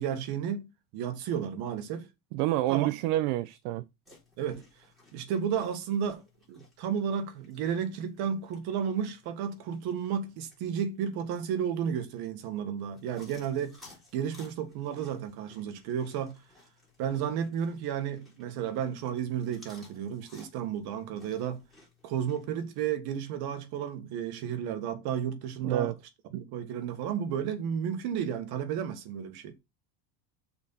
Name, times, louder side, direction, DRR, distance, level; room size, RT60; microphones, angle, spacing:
voice 1, 0.0-2.1 2.7-2.9 4.4-4.6 5.1-6.2 6.5-13.8 14.1-16.4 17.0-21.6 22.0-25.9 26.3-29.5, right 8 dB, 50° right, 1.5 m, -32 dB
voice 2, 2.3-3.8 25.6-25.9 26.3-26.4, right 15 dB, 70° right, 0.6 m, -28 dB
sound 1, 4.1-22.8, left 2 dB, ahead, 3.8 m, -59 dB
6.4 x 4.1 x 5.5 m
cardioid pair, 160°, 48 cm